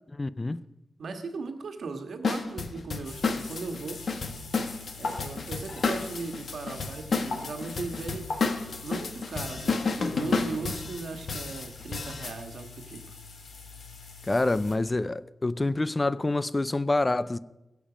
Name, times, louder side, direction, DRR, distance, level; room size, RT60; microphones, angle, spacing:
voice 1, 0.2-0.6 14.3-17.4, left 2 dB, 20° left, 0.3 m, -27 dB
voice 2, 1.0-4.0 5.0-8.3 8.8-13.2, right 4 dB, 70° right, 1.4 m, -38 dB
sound 1, 2.2-12.4, left 4 dB, 55° left, 1.1 m, -31 dB
sound 2, 3.0-14.7, left 4 dB, 85° left, 2.4 m, -42 dB
21.5 x 7.2 x 5.0 m
wide cardioid pair, 135°, 0 cm